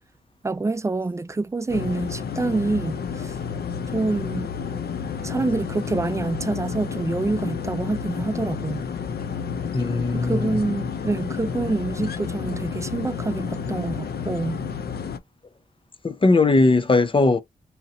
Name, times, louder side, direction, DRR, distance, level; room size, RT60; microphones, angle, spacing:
voice 1, 0.4-3.3 3.9-4.5 5.2-8.9 10.1-14.6, right 3 dB, 20° right, 0.4 m, -26 dB
sound 1, 1.7-15.2, left 6 dB, 80° left, 0.6 m, -30 dB
voice 2, 9.7-10.5 16.0-17.4, left 3 dB, 35° left, 0.6 m, -19 dB
2.8 x 2.8 x 4.0 m
cardioid pair, 80°, 16 cm